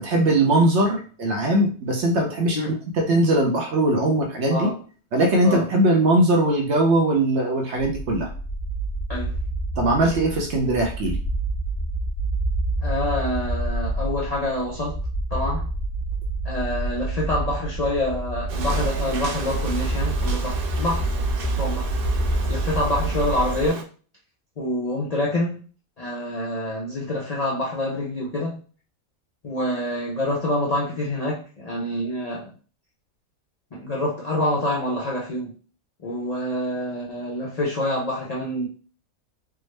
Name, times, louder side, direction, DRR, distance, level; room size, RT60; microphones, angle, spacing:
voice 1, 0.0-4.7 5.1-8.3 9.8-11.2, right 1 dB, 60° right, 1 dB, 0.9 m, -20 dB
sound 1, 7.8-23.7, right 2 dB, 30° left, 0.8 m, -27 dB
voice 2, 12.8-15.0 15.3-15.7 16.4-21.1 21.6-21.9 22.5-23.9 24.6-25.6 26.0-28.6 29.4-32.5 33.7-35.5 36.0-38.7, left 1 dB, 60° left, -4 dB, 0.4 m, -26 dB
sound 2, 18.5-23.8, right 5 dB, 85° right, 0.4 m, -35 dB
3.5 x 2.0 x 3.1 m, 0.39 s
omnidirectional pair, 1.6 m